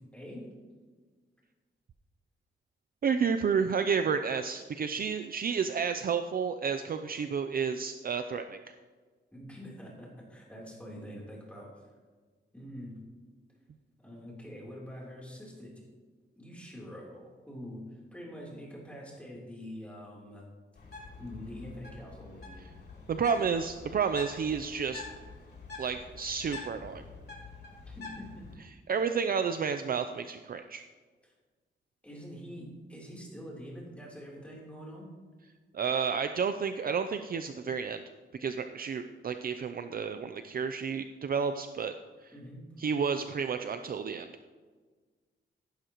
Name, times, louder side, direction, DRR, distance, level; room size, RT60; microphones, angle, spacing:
voice 1, 0.1-0.5 9.3-11.9 12.5-13.0 14.0-15.8 16.4-20.4 21.2-22.6 27.9-28.5 31.2-31.3 32.0-35.1 42.3-42.6, equal, 5° left, -4 dB, 3.5 m, -45 dB
voice 2, 3.0-8.6 23.1-25.0 25.8-27.0 28.9-30.9 35.7-38.0 38.4-41.9 42.2-42.3 42.8-44.3, right 6 dB, 45° right, 8 dB, 0.5 m, -31 dB
Bird, 20.7-28.5, left 3 dB, 55° left, 3.2 m, -46 dB
15.5 x 11.5 x 3.0 m, 1.4 s
wide cardioid pair, 130°, 20 cm